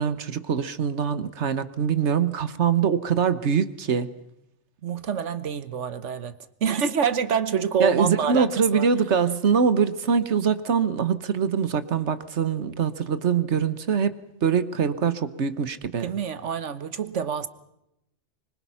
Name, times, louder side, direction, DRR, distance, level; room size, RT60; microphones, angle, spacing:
voice 1, 0.0-4.1 7.8-14.1 14.4-16.1, right 6 dB, 75° right, 1.4 m, -23 dB
voice 2, 4.8-6.3 6.6-8.9 16.0-17.5, right 7 dB, 90° right, 1.5 m, -26 dB
25.0 x 21.5 x 5.7 m
omnidirectional pair, 1.2 m